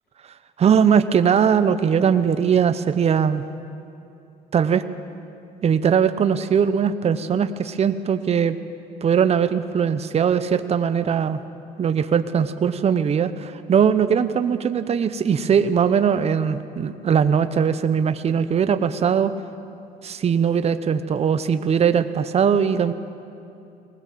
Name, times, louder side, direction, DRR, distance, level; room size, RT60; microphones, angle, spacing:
voice 1, 0.6-3.4 4.5-4.8 5.6-8.6 9.0-11.4 11.8-19.3 20.0-22.9, right 7 dB, 40° right, 11 dB, 0.9 m, -20 dB
20.0 x 19.5 x 7.6 m, 2.7 s
cardioid pair, 110°, 17 cm